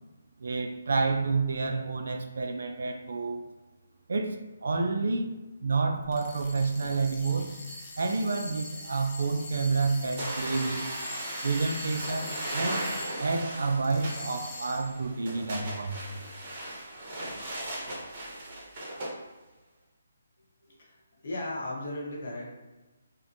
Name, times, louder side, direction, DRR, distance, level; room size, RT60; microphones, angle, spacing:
voice 1, 0.4-3.4 4.1-5.3 5.6-7.5 8.0-10.9 11.4-12.9 13.2-16.2, right 4 dB, 70° right, 6 dB, 0.3 m, -29 dB
sound 1, 6.0-13.4 13.8-15.0, left 2 dB, 25° left, 0.5 m, -43 dB
sound 2, 10.2-19.1, right 1 dB, 40° right, 0.7 m, -37 dB
voice 2, 20.6-22.5, left 1 dB, 60° left, -2 dB, 0.8 m, -37 dB
2.5 x 2.1 x 2.6 m, 1.1 s
hypercardioid pair, 155°, 0 cm